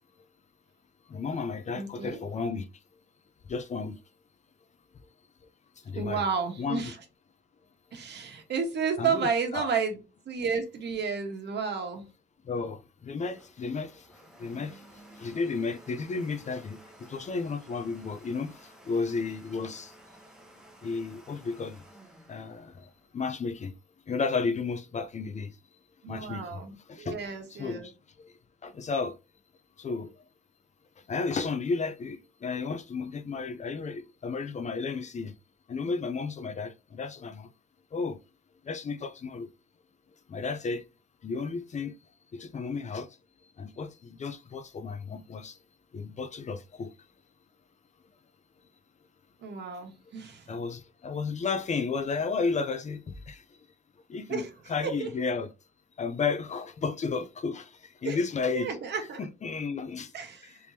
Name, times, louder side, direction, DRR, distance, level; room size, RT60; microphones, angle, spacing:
voice 1, 1.1-2.7 3.5-4.0 5.9-6.2 6.6-6.9 9.0-9.7 12.5-14.0 14.4-14.8 15.2-19.9 20.8-21.8 22.3-23.7 24.1-25.5 26.1-26.6 26.9-27.1 27.6-27.9 28.2-28.3 28.6-29.2 29.8-30.1 31.1-35.3 35.7-37.5 37.9-38.2 38.7-39.5 40.3-40.8 41.2-41.9 42.3-43.1 43.6-45.6 45.9-46.9 50.5-53.0 53.3-53.4 54.1-54.4 54.7-55.5 56.0-58.7 59.2-60.1 60.4-60.5, left 4 dB, 35° left, 0.5 m, -33 dB
voice 2, 1.7-2.2 5.9-7.0 7.9-10.0 10.2-12.0 26.0-27.9 49.4-50.5 54.3-55.1 58.0-58.2 58.5-59.3 60.1-60.6, right 5 dB, 60° right, 1.2 m, -32 dB
Domestic sounds home sounds, 13.0-23.7, right 1 dB, 5° right, 1.0 m, -54 dB
3.5 x 3.0 x 2.7 m
cardioid pair, 90°, 20 cm